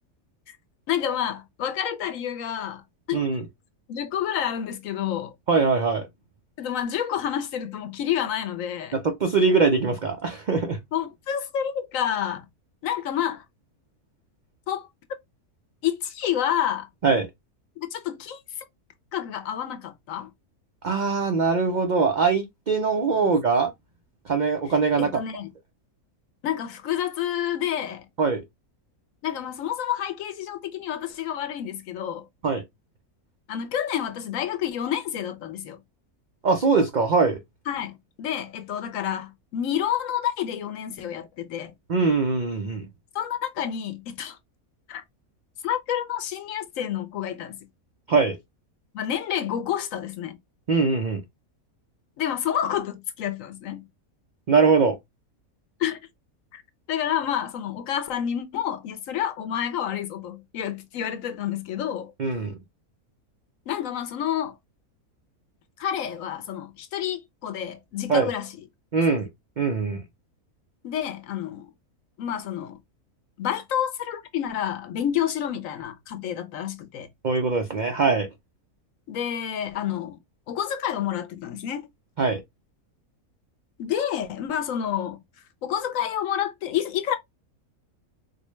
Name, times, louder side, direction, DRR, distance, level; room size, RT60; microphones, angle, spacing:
voice 1, 0.9-2.8 3.1-3.3 3.9-5.3 6.6-9.0 10.9-12.5 12.8-13.4 14.7-14.9 15.8-16.9 17.9-18.4 19.1-20.3 23.1-23.4 25.0-25.5 26.4-28.1 29.2-32.3 33.5-35.8 37.7-41.7 43.1-44.4 44.9-45.0 45.6-47.6 48.9-50.4 52.2-53.9 55.8-56.0 56.5-56.6 56.9-62.1 63.7-64.5 65.8-68.5 69.1-69.2 70.8-71.7 72.2-72.8 73.4-77.1 79.1-80.2 80.5-81.9 83.8-85.2 85.6-87.2, left 10 dB, 70° left, 1.0 m, -29 dB
voice 2, 3.1-3.4 5.5-6.1 8.9-10.8 17.0-17.3 20.8-23.7 24.3-25.1 28.2-28.4 32.4-32.6 36.4-37.4 41.9-42.9 48.1-48.4 50.7-51.2 54.5-55.0 62.2-62.5 68.1-68.3 68.9-69.3 69.6-70.0 77.2-78.3 82.2-82.4, right 4 dB, 85° right, 0.4 m, -22 dB
4.3 x 2.1 x 3.0 m
omnidirectional pair, 1.6 m